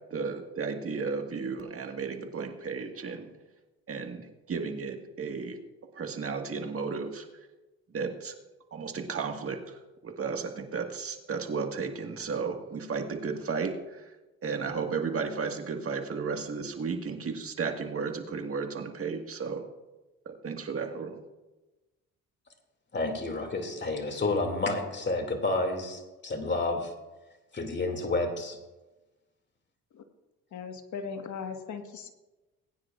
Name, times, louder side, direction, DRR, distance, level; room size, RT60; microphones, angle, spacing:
voice 1, 0.1-3.3 3.9-5.6 5.9-7.2 7.9-8.3 8.7-14.1 14.4-19.6 20.2-21.2, right 5 dB, 40° right, 4 dB, 1.8 m, -34 dB
voice 2, 22.9-26.9 27.5-28.6, left 2 dB, 30° left, 5 dB, 2.6 m, -30 dB
voice 3, 30.5-32.1, left 6 dB, 60° left, 6 dB, 1.6 m, -38 dB
21.0 x 9.5 x 2.5 m, 1.1 s
supercardioid pair, 65°, 34 cm